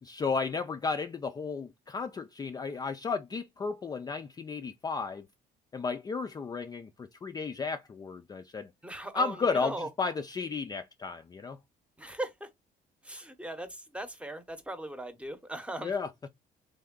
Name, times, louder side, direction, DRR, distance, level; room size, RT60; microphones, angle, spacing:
voice 1, 0.0-5.3 5.7-8.7 9.1-11.6 15.8-16.1, left 4 dB, 25° left, 0.4 m, -33 dB
voice 2, 8.8-9.9 12.0-12.5 13.0-15.9, right 1 dB, 5° right, 0.9 m, -39 dB
3.5 x 3.3 x 3.7 m
cardioid pair, 110°, 17 cm